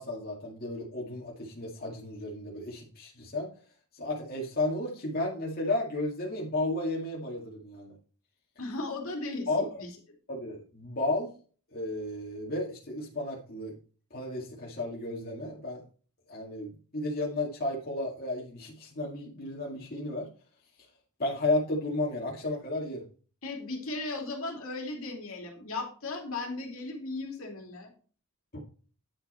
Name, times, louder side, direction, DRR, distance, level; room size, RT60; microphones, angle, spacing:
voice 1, 0.0-3.5 3.9-7.9 9.5-9.7 10.3-11.3 11.7-13.7 14.1-15.8 16.3-20.3 21.2-23.0, left 2 dB, 45° left, -4 dB, 2.1 m, -33 dB
voice 2, 8.6-9.5 9.8-9.9 23.4-27.9, left 2 dB, 65° left, 2 dB, 2.6 m, -36 dB
10.0 x 5.8 x 4.3 m, 0.39 s
head